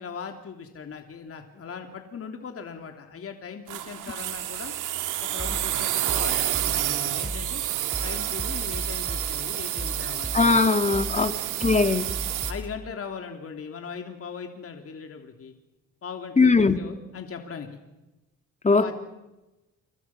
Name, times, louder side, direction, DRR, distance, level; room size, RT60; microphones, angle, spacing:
voice 1, 0.0-4.7 5.2-7.6 8.0-10.4 11.1-11.4 12.5-15.5 16.0-17.8 18.7-19.0, left 6 dB, 50° left, 4 dB, 3.0 m, -39 dB
sound 1, 3.7-12.5, right 13 dB, 90° right, 2.2 m, -29 dB
sound 2, 5.4-12.8, equal, 5° right, 3.5 m, -37 dB
voice 2, 10.3-11.3 11.6-12.1 16.4-16.8 18.6-18.9, left 4 dB, 25° left, 8 dB, 2.1 m, -19 dB
29.0 x 25.5 x 6.0 m, 1.0 s
cardioid pair, 90°, 30 cm